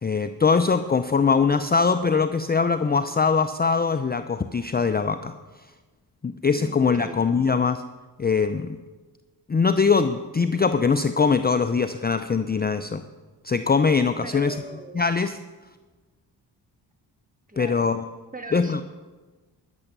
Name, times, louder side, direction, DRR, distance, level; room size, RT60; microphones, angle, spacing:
voice 1, 0.0-5.3 6.2-7.8 8.2-8.8 9.5-13.0 13.4-14.6 14.9-15.4 17.6-18.0 18.5-18.8, left 5 dB, 20° left, 10 dB, 0.5 m, -22 dB
voice 2, 6.5-7.2 14.2-15.0 17.5-17.9 18.3-18.8, right 1 dB, 15° right, 6 dB, 1.7 m, -39 dB
12.0 x 7.2 x 6.7 m, 1.3 s
supercardioid pair, 45°, 46 cm